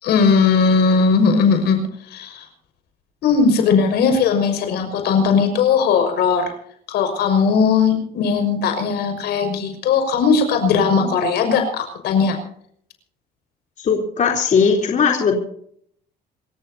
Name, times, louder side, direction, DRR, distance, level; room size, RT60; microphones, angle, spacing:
voice 1, 0.0-1.8 2.1-2.4 3.2-6.5 6.9-12.4, left 5 dB, 75° left, 5 dB, 5.9 m, -18 dB
voice 2, 13.8-15.4, left 6 dB, 50° left, 0 dB, 3.7 m, -18 dB
27.0 x 15.0 x 2.9 m, 0.64 s
cardioid pair, 110°, 17 cm